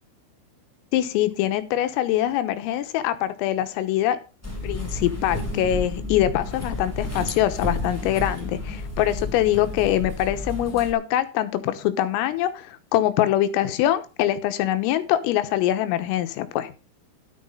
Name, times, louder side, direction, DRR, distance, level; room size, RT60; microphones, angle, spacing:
voice 1, 0.9-4.2 4.6-16.7, left 12 dB, 90° left, 11 dB, 3.7 m, -23 dB
sound 1, 4.4-10.9, left 2 dB, 5° left, 2.1 m, -31 dB
13.0 x 6.5 x 5.4 m, 0.32 s
omnidirectional pair, 5.9 m